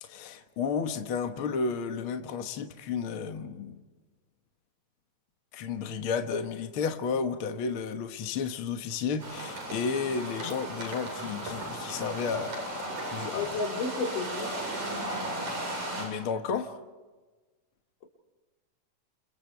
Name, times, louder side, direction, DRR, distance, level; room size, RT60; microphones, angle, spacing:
voice 1, 0.0-3.8 5.5-13.6 16.0-16.8, left 5 dB, 50° left, 1.9 m, -32 dB
sound 1, 9.2-16.0, right 1 dB, 65° right, 9.6 m, -36 dB
voice 2, 13.3-14.5, left 4 dB, 75° left, 4.8 m, -32 dB
30.0 x 27.5 x 4.7 m
omnidirectional pair, 3.7 m